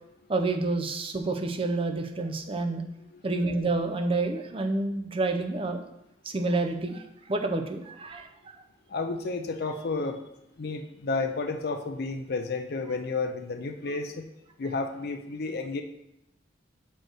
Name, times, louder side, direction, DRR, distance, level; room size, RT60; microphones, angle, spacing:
voice 1, 0.3-2.8 3.2-5.8 6.2-8.3, right 2 dB, 30° right, 5 dB, 0.6 m, -28 dB
voice 2, 8.9-10.2 10.6-14.2 14.6-15.8, left 3 dB, 55° left, 5 dB, 0.5 m, -31 dB
6.4 x 4.6 x 4.6 m, 0.83 s
head